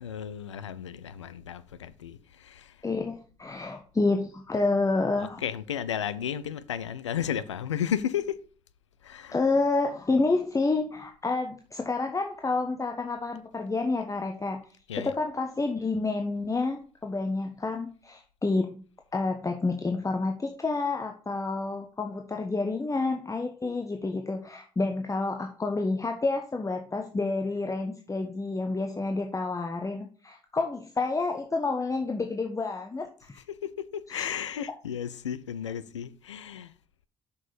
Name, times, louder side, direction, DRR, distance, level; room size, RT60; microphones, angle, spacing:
voice 1, 0.0-2.2 2.4-2.7 5.4-8.4 9.0-9.4 14.9-15.2 33.5-36.7, left 9 dB, 85° left, 0.4 m, -33 dB
voice 2, 2.8-5.4 9.3-14.6 15.0-18.8 19.1-33.4 34.1-34.2, left 3 dB, 20° left, 1.2 m, -29 dB
6.7 x 6.3 x 5.1 m
figure-of-eight pair, 45°, 15 cm